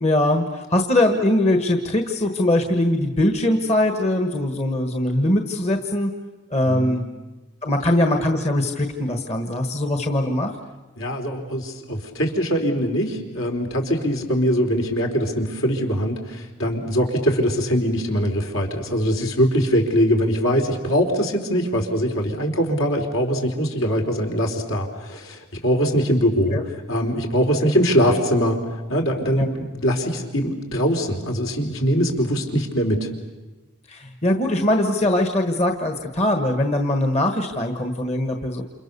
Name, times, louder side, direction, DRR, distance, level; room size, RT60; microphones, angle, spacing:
voice 1, 0.0-6.1 6.5-7.0 7.6-10.5 26.5-26.6 29.4-29.5 33.9-38.6, left 1 dB, 30° left, 5 dB, 1.4 m, -21 dB
voice 2, 6.7-7.0 11.0-26.6 26.9-28.6 28.9-33.1, equal, 70° left, 2 dB, 3.8 m, -22 dB
29.0 x 28.0 x 6.9 m, 1.2 s
head